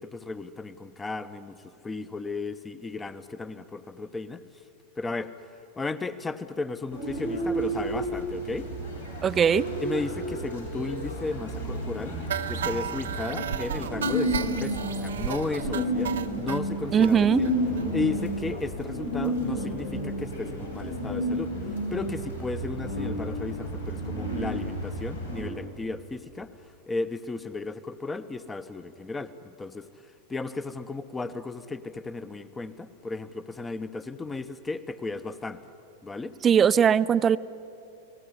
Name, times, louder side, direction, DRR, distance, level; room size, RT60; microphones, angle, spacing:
voice 1, 0.0-4.4 5.0-5.3 5.8-8.7 9.8-12.2 12.5-17.5 17.9-21.5 21.9-26.5 26.9-29.9 30.3-35.6 36.0-36.3, left 3 dB, 15° left, 12 dB, 0.8 m, -34 dB
sound 1, 6.9-25.4, equal, 90° left, 7.3 m, -31 dB
voice 2, 9.2-9.7 16.9-17.4 36.4-37.4, right 8 dB, 25° right, 15 dB, 0.5 m, -20 dB
sound 2, 12.3-16.6 17.0-17.1 17.4-17.5 17.8-17.9 18.2-18.3, right 9 dB, 65° right, 1.0 m, -33 dB
30.0 x 18.5 x 9.8 m, 2.8 s
figure-of-eight pair, 90°, 0 cm